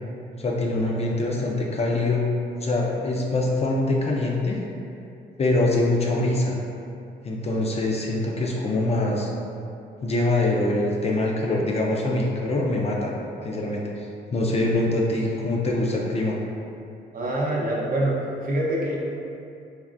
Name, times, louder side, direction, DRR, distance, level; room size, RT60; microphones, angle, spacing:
voice 1, 0.4-2.3 2.6-4.6 5.4-6.6 7.2-9.3 10.0-13.1 13.4-14.1 14.3-16.4, left 2 dB, 30° left, -2 dB, 0.4 m, -24 dB
voice 2, 17.1-19.0, right 1 dB, 45° right, -4 dB, 0.6 m, -25 dB
3.4 x 2.4 x 2.4 m, 2.6 s
cardioid pair, 90°, 20 cm